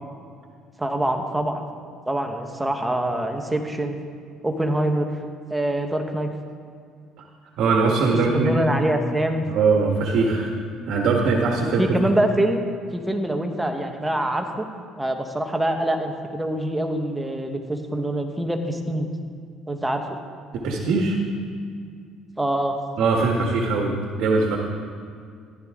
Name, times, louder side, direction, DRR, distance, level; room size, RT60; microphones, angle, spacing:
voice 1, 0.8-1.6 2.1-4.0 4.4-5.1 5.5-6.3 8.3-9.5 11.8-12.6 12.9-14.7 15.0-19.1 19.7-20.2 22.4-22.8, right 1 dB, 10° right, 4 dB, 1.2 m, -24 dB
voice 2, 7.6-8.5 9.5-10.5 10.9-11.8 20.5-21.2 23.0-24.6, right 4 dB, 65° right, 0 dB, 1.5 m, -21 dB
14.5 x 12.0 x 3.7 m, 2.3 s
cardioid pair, 115°, 0 cm